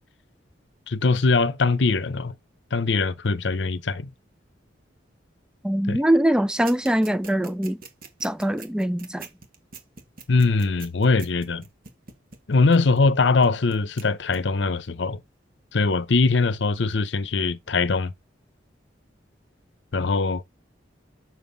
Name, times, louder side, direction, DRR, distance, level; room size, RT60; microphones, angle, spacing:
voice 1, 0.9-2.3 2.7-4.1 5.9-6.0 10.3-11.6 12.5-15.2 15.7-18.1 19.9-20.4, left 3 dB, 70° left, 0.7 m, -22 dB
voice 2, 5.6-7.8 8.2-9.3, right 1 dB, 5° right, 0.4 m, -22 dB
sound 1, 6.7-13.1 13.4-14.0 14.3-14.4, right 4 dB, 50° right, 1.8 m, -42 dB
7.3 x 6.1 x 3.9 m
head